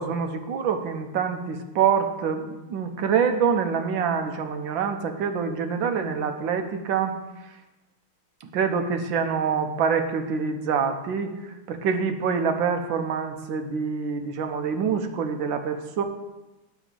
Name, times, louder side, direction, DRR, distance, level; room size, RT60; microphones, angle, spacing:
voice 1, 0.0-7.2 8.4-16.0, right 6 dB, 70° right, 6 dB, 1.5 m, -26 dB
11.0 x 4.0 x 7.4 m, 1.1 s
omnidirectional pair, 2.3 m